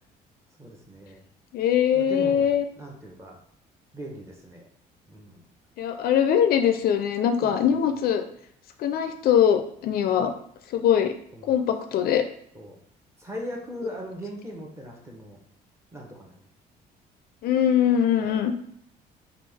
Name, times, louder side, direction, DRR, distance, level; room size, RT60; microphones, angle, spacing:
voice 1, 0.6-1.2 1.9-3.4 3.9-4.6 5.1-5.5 7.4-7.8 11.3-11.6 12.5-12.8 13.2-15.4 15.9-16.3 18.2-18.4, equal, 15° right, -1 dB, 0.9 m, -39 dB
voice 2, 1.5-2.6 5.8-8.2 8.8-10.3 10.7-11.1 11.5-12.2 17.4-18.5, left 9 dB, 65° left, 7 dB, 0.4 m, -22 dB
3.2 x 2.3 x 3.5 m, 0.69 s
cardioid pair, 110°, 17 cm